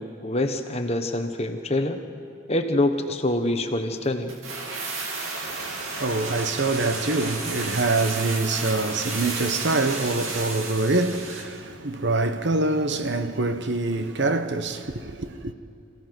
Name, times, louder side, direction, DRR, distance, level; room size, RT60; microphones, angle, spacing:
voice 1, 0.0-2.0 2.5-4.3, left 1 dB, 30° left, 1.1 m, -25 dB
sound 1, 4.3-11.6 11.8-11.9, right 3 dB, 75° right, 2.6 m, -32 dB
voice 2, 5.4-15.5, right 2 dB, 55° right, 1.0 m, -25 dB
27.5 x 16.5 x 6.1 m
head